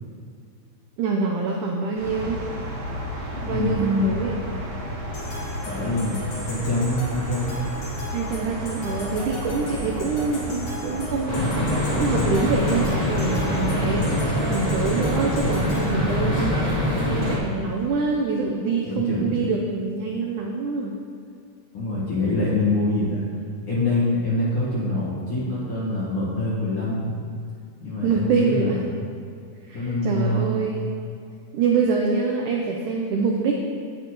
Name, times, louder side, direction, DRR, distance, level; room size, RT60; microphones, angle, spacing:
voice 1, 1.0-2.4 3.4-4.4 8.1-16.7 17.0-21.0 28.0-28.8 29.7-31.0 31.5-33.5, right 4 dB, 80° right, 0 dB, 1.8 m, -25 dB
sound 1, 1.9-14.2, equal, 60° right, 1.3 m, -33 dB
voice 2, 3.5-4.2 5.6-7.6 18.9-19.5 21.7-23.2 23.7-27.1 27.8-29.0 29.7-30.7, left 2 dB, 45° left, -8 dB, 1.9 m, -25 dB
sound 2, 5.1-15.9, left 1 dB, 70° left, 4.2 m, -38 dB
sound 3, 11.3-17.4, left 1 dB, 20° left, 1.2 m, -24 dB
10.0 x 9.1 x 3.2 m, 2.3 s
omnidirectional pair, 4.4 m